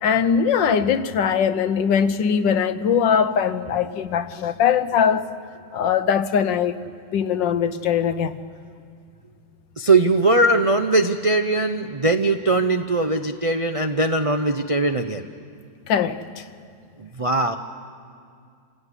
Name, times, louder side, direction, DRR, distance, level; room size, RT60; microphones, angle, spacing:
voice 1, 0.0-5.3 5.7-8.4 15.9-16.5, left 7 dB, 85° left, 1.6 m, -21 dB
voice 2, 9.8-15.2 17.0-17.6, right 2 dB, 55° right, 0.3 m, -20 dB
27.5 x 17.0 x 9.8 m
omnidirectional pair, 1.9 m